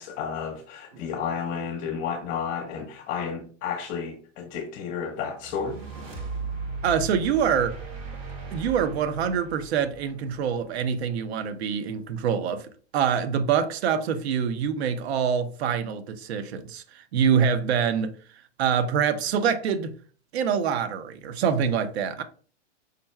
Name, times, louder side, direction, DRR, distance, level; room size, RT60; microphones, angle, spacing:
voice 1, 0.0-5.8, left 6 dB, 35° left, 0.9 m, -32 dB
sound 1, 5.4-10.8, right 4 dB, 35° right, 1.5 m, -37 dB
voice 2, 6.8-7.8 8.5-18.1 18.6-19.9 20.3-22.2, right 7 dB, 60° right, 0.9 m, -25 dB
5.2 x 2.2 x 4.3 m
hypercardioid pair, 135°, 36 cm